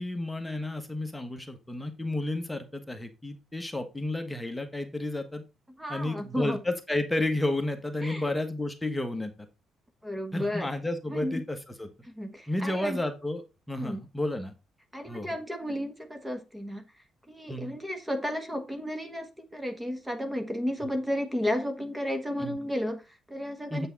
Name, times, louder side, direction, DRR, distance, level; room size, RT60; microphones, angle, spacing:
voice 1, 0.0-5.4 5.9-9.3 10.3-11.9 12.5-14.5 15.1-15.4 17.5-17.7 22.4-22.6 23.7-23.9, left 1 dB, 10° left, 6 dB, 1.4 m, -32 dB
voice 2, 5.8-6.6 8.0-8.3 10.0-10.7 11.1-11.4 12.0-13.0 13.8-14.0 14.9-16.8 17.3-23.9, equal, 10° right, 7 dB, 1.3 m, -33 dB
8.3 x 5.6 x 4.0 m, 0.26 s
cardioid pair, 90°, 0 cm